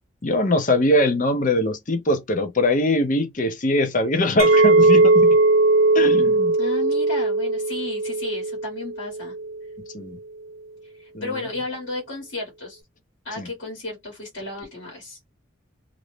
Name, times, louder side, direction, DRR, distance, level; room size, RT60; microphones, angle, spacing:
voice 1, 0.2-5.3 5.9-6.5 9.9-10.2 11.1-11.4 13.4-13.5, left 1 dB, 40° left, 0.6 m, -22 dB
Chink clink, 4.4-9.6, right 2 dB, 75° right, 0.6 m, -18 dB
voice 2, 6.6-9.3 10.8-12.8 13.2-15.2, left 2 dB, 65° left, 1.3 m, -33 dB
2.6 x 2.0 x 3.1 m
head